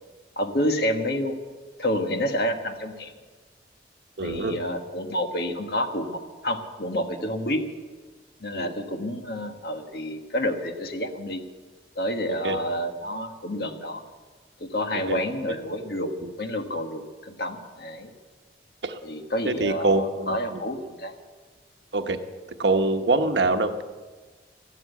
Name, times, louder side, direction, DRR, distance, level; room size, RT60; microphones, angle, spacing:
voice 1, 0.4-1.3 1.8-3.1 4.2-7.6 8.4-11.4 12.0-14.0 14.6-16.1 16.4-18.1 19.0-21.1, left 1 dB, 60° left, 5 dB, 1.6 m, -29 dB
voice 2, 4.2-4.6 8.5-8.7 12.3-12.6 15.1-15.2 16.2-16.3 18.8-19.0 19.4-20.6 21.9-22.2 22.6-23.8, right 2 dB, 75° right, 6 dB, 1.1 m, -24 dB
14.0 x 12.0 x 8.2 m, 1.4 s
head